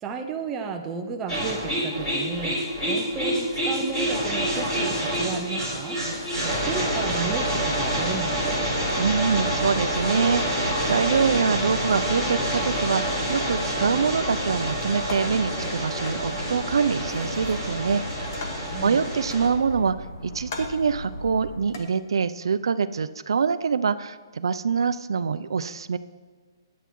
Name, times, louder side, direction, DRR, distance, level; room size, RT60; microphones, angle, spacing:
voice 1, 0.0-2.6 2.9-6.0 6.5-8.5 18.7-19.0, right 5 dB, 10° right, 2 dB, 0.4 m, -33 dB
sound 1, 1.3-19.5, equal, 20° left, 2.9 m, -27 dB
sound 2, 6.4-21.6, left 1 dB, 70° left, 1.8 m, -38 dB
voice 2, 9.0-18.0 18.8-20.0 20.2-26.0, right 6 dB, 80° right, 13 dB, 0.3 m, -25 dB
sound 3, 14.8-15.5 16.1-16.3 17.1-17.7 18.0-18.8 19.3-20.0 20.4-20.9 21.7-21.9, left 3 dB, 40° left, 0.9 m, -39 dB
11.0 x 8.0 x 3.0 m, 1.5 s
hypercardioid pair, 175°, 2 cm